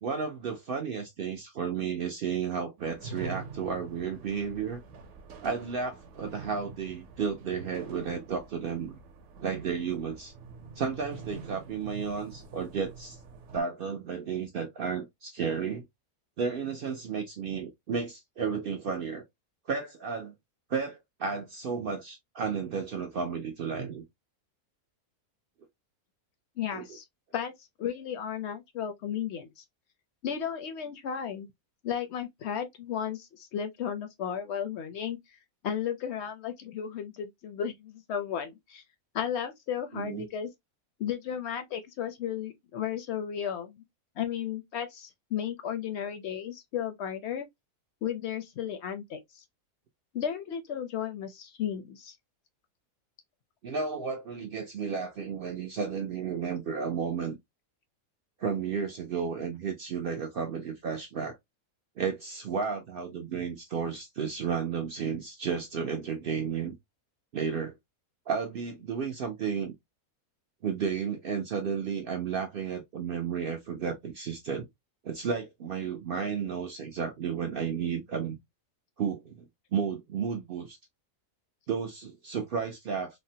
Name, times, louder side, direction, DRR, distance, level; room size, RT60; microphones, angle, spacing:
voice 1, 0.0-4.8 5.4-9.0 9.4-10.3 10.8-13.2 13.5-15.8 16.4-19.2 19.7-20.3 20.7-24.0 26.7-26.8 39.9-40.3 53.6-57.4 58.4-61.4 62.0-66.7 67.3-67.7 68.3-69.8 70.6-74.7 75.0-78.4 79.0-80.8 81.7-83.2, right 6 dB, 85° right, 0.4 m, -33 dB
sound 1, 2.8-13.6, right 4 dB, 65° right, 0.9 m, -45 dB
voice 2, 26.6-27.0 27.3-27.5 27.8-29.6 30.2-31.5 31.8-35.2 35.6-38.8 39.1-40.5 41.0-43.8 44.2-47.5 48.0-49.4 50.1-52.2, left 9 dB, 65° left, 0.6 m, -34 dB
3.4 x 2.1 x 2.6 m
omnidirectional pair, 1.6 m